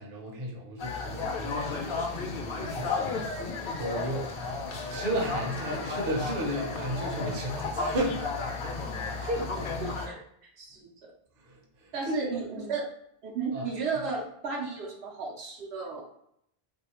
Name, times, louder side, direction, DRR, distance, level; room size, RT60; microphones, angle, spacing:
voice 1, 0.0-3.2 3.7-4.3 4.9-8.3 9.2-9.5 11.4-12.7 13.5-14.0, right 1 dB, 60° right, -1 dB, 0.9 m, -34 dB
sound 1, 0.8-10.1, left 4 dB, 65° left, 0.8 m, -33 dB
voice 2, 9.8-10.2 10.4-11.1 11.9-12.8 13.2-16.0, right 5 dB, 85° right, -1 dB, 1.0 m, -34 dB
3.1 x 2.7 x 2.9 m, 0.72 s
omnidirectional pair, 1.0 m